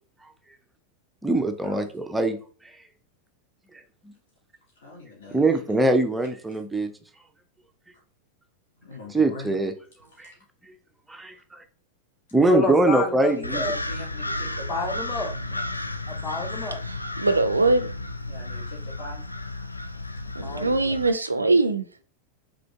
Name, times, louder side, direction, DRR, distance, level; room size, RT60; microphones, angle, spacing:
voice 1, 1.2-2.4 4.0-4.1 5.3-6.9 9.1-9.7 10.2-10.3 11.1-11.6 12.3-13.6, right 2 dB, 5° right, 0.6 m, -23 dB
voice 2, 4.8-5.9 8.8-9.5 13.3-15.0 15.7-15.9 18.3-19.2, left 1 dB, 60° left, 1.9 m, -40 dB
voice 3, 12.5-13.3 13.6-13.7 14.7-15.7 16.1-16.8 20.4-20.7, left 3 dB, 20° left, 0.9 m, -29 dB
sound 1, 13.4-21.1, left 2 dB, 85° left, 0.3 m, -33 dB
voice 4, 16.8-17.9 20.3-22.1, right 2 dB, 80° right, 0.4 m, -22 dB
5.0 x 3.7 x 2.3 m
figure-of-eight pair, 90°, 0 cm